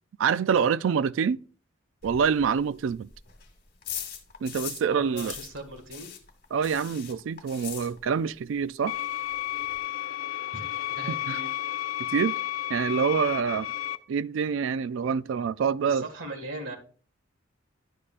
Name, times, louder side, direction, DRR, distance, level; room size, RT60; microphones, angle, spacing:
voice 1, 0.2-1.4 2.0-3.1 4.4-5.3 6.5-8.9 11.1-11.4 12.1-12.4 12.7-13.7 14.1-16.0, right 6 dB, 70° right, 0.3 m, -26 dB
sound 1, 2.0-4.9 5.1-8.4 8.6-8.7 9.0-9.1 9.3-9.8, left 9 dB, 50° left, 2.0 m, -40 dB
voice 2, 4.9-6.1 10.5-10.7 11.0-11.5 15.9-16.8, right 2 dB, 85° right, 1.9 m, -39 dB
sound 2, 8.9-14.0, left 14 dB, 80° left, 0.6 m, -32 dB
11.0 x 8.5 x 2.5 m
head